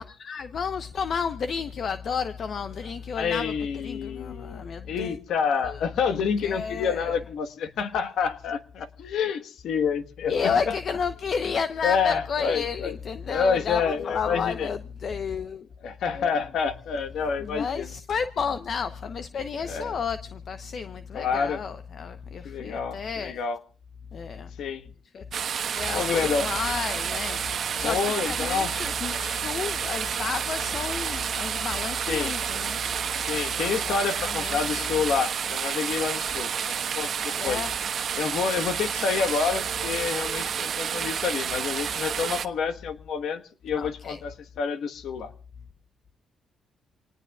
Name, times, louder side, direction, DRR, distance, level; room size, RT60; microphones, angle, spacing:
voice 1, 0.0-5.2 5.6-5.8 6.4-7.2 10.3-15.7 16.1-16.3 17.4-23.3 24.1-24.5 25.1-25.2 25.7-33.4 33.9-34.9 37.4-37.7 40.2-40.3 43.8-44.2, left 6 dB, 55° left, 0.9 m, -32 dB
voice 2, 3.1-10.7 11.8-12.9 13.3-14.7 15.8-17.9 19.7-20.0 21.1-21.6 22.4-23.6 24.6-24.9 25.9-26.5 27.8-28.7 32.1-32.4 33.2-37.6 38.1-45.3, left 6 dB, 75° left, 1.4 m, -28 dB
sound 1, 25.3-42.5, right 7 dB, 55° right, 1.2 m, -30 dB
27.5 x 19.0 x 2.4 m
cardioid pair, 90°, 0 cm